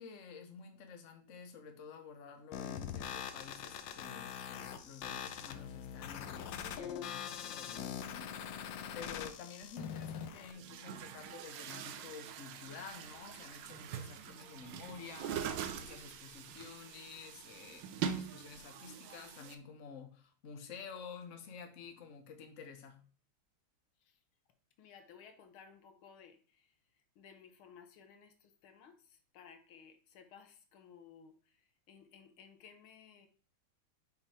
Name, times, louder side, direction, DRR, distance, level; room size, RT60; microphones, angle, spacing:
voice 1, 0.0-8.6 8.9-23.0, left 6 dB, 45° left, 6 dB, 1.1 m, -51 dB
sound 1, 2.5-10.5, left 8 dB, 70° left, 1.4 m, -43 dB
Chatter / Gurgling / Tap, 9.6-9.7 10.4-19.5, right 8 dB, 70° right, 1.3 m, -43 dB
voice 2, 24.8-26.8 27.2-33.3, left 7 dB, 85° left, 7 dB, 1.9 m, -58 dB
6.5 x 5.3 x 4.2 m, 0.41 s
omnidirectional pair, 2.2 m